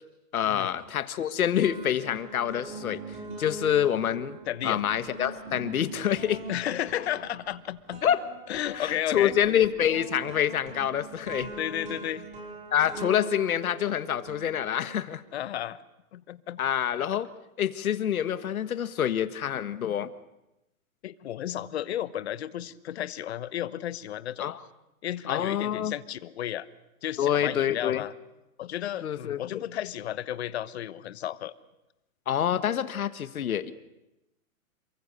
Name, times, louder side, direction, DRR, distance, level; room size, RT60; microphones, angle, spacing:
voice 1, 0.3-3.0 3.4-4.4 4.6-6.4 8.0-8.2 8.7-11.5 12.7-15.2 16.6-17.3 17.6-20.1 24.4-24.6 25.3-25.9 27.2-28.0 29.0-29.6 32.3-33.7, left 10 dB, 75° left, 12 dB, 1.6 m, -27 dB
sound 1, 0.8-1.3 1.6-15.0, right 2 dB, 15° right, 5.0 m, -42 dB
voice 2, 4.5-4.8 6.5-8.0 8.5-9.3 11.6-12.3 15.3-15.8 16.1-16.6 21.0-24.5 25.0-26.7 27.0-28.1 28.6-31.5, left 11 dB, 45° left, 15 dB, 1.1 m, -33 dB
28.5 x 23.0 x 6.8 m, 0.93 s
hypercardioid pair, 165°, 43 cm